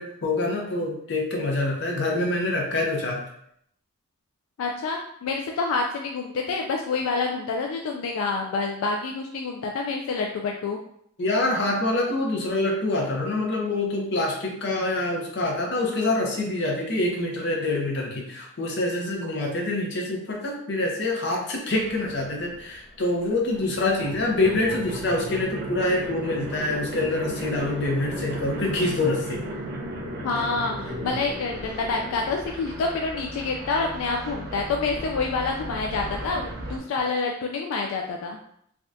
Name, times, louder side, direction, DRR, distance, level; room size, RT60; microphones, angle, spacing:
voice 1, 0.0-3.2 11.2-29.5, left 2 dB, 55° left, 0 dB, 0.7 m, -26 dB
voice 2, 4.6-10.8 30.2-38.4, left 4 dB, 80° left, 2 dB, 0.3 m, -27 dB
sound 1, 21.8-23.0 23.3-36.8, right 1 dB, 50° right, 0.5 m, -35 dB
3.4 x 2.2 x 2.6 m, 0.71 s
head